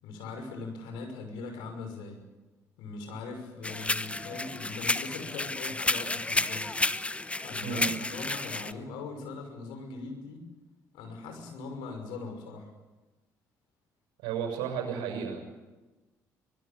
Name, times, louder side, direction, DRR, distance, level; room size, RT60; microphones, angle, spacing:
voice 1, 0.0-2.2 2.8-6.7 7.4-10.4 10.9-12.7, left 4 dB, 70° left, 4 dB, 5.9 m, -40 dB
sound 1, 3.6-8.7, left 2 dB, 15° left, 1.0 m, -31 dB
voice 2, 7.6-8.0 14.2-15.4, right 7 dB, 70° right, 4 dB, 6.5 m, -33 dB
24.5 x 21.0 x 8.8 m, 1.1 s
figure-of-eight pair, 50°, 8 cm